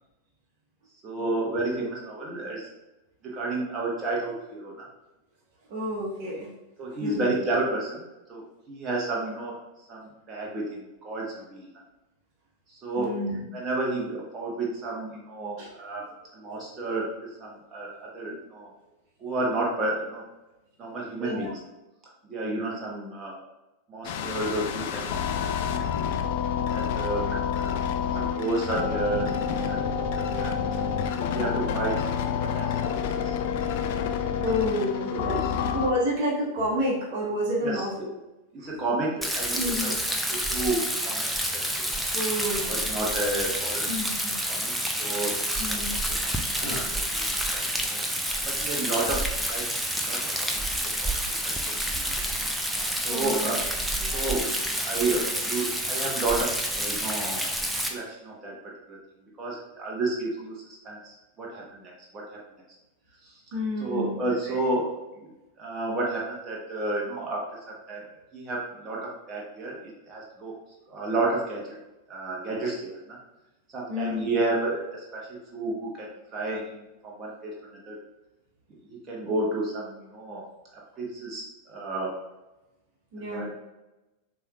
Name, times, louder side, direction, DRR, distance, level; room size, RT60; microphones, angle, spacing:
voice 1, 1.0-2.7 3.2-4.8 6.8-8.0 8.3-9.5 9.9-11.7 12.7-13.1 13.5-16.0 16.3-18.7 19.2-20.2 20.8-21.6 22.3-23.4 23.9-25.4 25.7-25.8 26.6-27.8 28.1-29.8 30.1-30.5 31.1-32.0 32.4-33.3 35.1-35.4 37.6-37.8 38.5-39.9 40.3-41.3 41.5-41.6 42.7-43.9 44.5-44.7 45.0-45.4 45.7-45.8 46.5-47.3 47.5-48.0 48.6-49.2 49.5-49.7 50.0-50.6 51.0-51.4 51.7-52.0 53.0-53.6 54.1-54.5 54.8-57.4 57.9-58.5 58.9-59.0 59.4-60.5 60.8-62.4 63.2-63.3 63.8-64.9 65.1-65.3 65.6-67.4 67.9-68.0 68.3-70.5 70.9-71.8 72.1-73.2 73.7-77.6 77.9-78.0 78.8-80.4 80.7-82.1 83.2-83.4, right 2 dB, 25° right, -4 dB, 1.1 m, -31 dB
voice 2, 5.7-6.5 7.0-7.3 13.0-13.4 15.6-15.7 16.4-16.7 18.3-18.4 21.2-21.5 34.4-38.1 38.6-38.8 39.6-39.9 42.1-42.9 43.9-44.3 45.6-46.0 46.6-46.9 53.0-53.5 54.0-54.3 63.5-64.2 64.4-64.6 73.9-74.3 83.1-83.4, left 1 dB, 50° right, -2 dB, 1.1 m, -30 dB
sound 1, 24.0-35.9, left 7 dB, 50° left, 0.4 m, -28 dB
Rain, 39.2-57.9, right 1 dB, 5° right, 0.6 m, -29 dB
6.8 x 3.0 x 2.4 m, 1.0 s
figure-of-eight pair, 90°, 0 cm